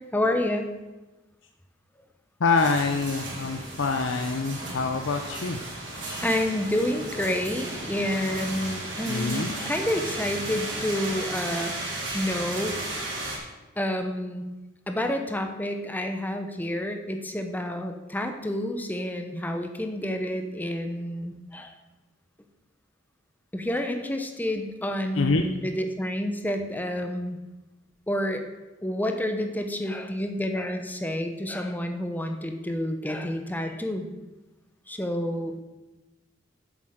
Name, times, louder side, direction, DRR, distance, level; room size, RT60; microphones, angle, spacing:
voice 1, 0.1-0.7 6.2-12.8 13.8-14.4 14.9-21.7 23.5-27.4 28.1-28.4 28.8-34.1 34.9-35.6, left 1 dB, 10° left, 5 dB, 0.9 m, -29 dB
voice 2, 2.4-5.6 9.0-9.5 25.1-25.4, left 4 dB, 70° left, 5 dB, 0.6 m, -25 dB
sound 1, 2.5-13.4, right 2 dB, 65° right, 3.5 m, -34 dB
8.7 x 7.2 x 6.5 m, 1.1 s
head